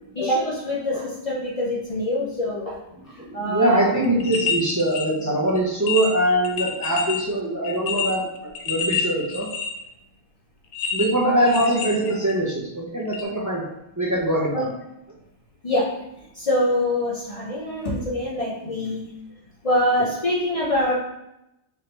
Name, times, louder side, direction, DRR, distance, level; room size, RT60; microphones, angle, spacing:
voice 1, 0.1-2.8 3.3-4.0 11.3-11.6 14.5-14.7 15.6-15.9 16.4-19.1 19.6-20.9, left 1 dB, 35° left, -5 dB, 0.8 m, -24 dB
voice 2, 3.2-9.5 10.9-13.6 14.0-14.7, right 1 dB, 20° right, -5 dB, 0.8 m, -22 dB
sound 1, 4.0-5.1 5.5-5.6 5.9-7.2 7.6-9.9 10.7-12.5 13.1-13.2, left 6 dB, 80° left, 0.9 m, -28 dB
4.7 x 3.4 x 3.0 m, 0.87 s
omnidirectional pair, 1.1 m